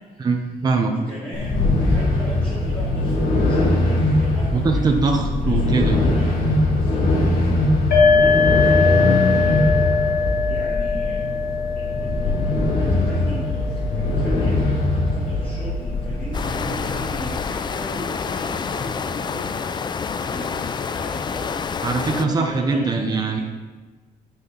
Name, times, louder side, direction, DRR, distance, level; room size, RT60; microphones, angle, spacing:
voice 1, 0.2-0.9 4.5-6.0 8.0-8.1 21.8-23.4, right 4 dB, 25° right, 3 dB, 0.9 m, -22 dB
voice 2, 0.8-5.0 5.4-6.4 6.7-11.3 11.7-23.4, equal, 10° left, -10 dB, 2.9 m, -38 dB
sound 1, 1.3-17.3, left 2 dB, 65° left, 2.5 m, -21 dB
sound 2, 7.9-15.4, left 5 dB, 85° left, 2.1 m, -22 dB
sound 3, 16.3-22.3, left 6 dB, 30° left, 0.4 m, -28 dB
10.0 x 7.4 x 4.0 m, 1.3 s
cardioid pair, 145°, 16 cm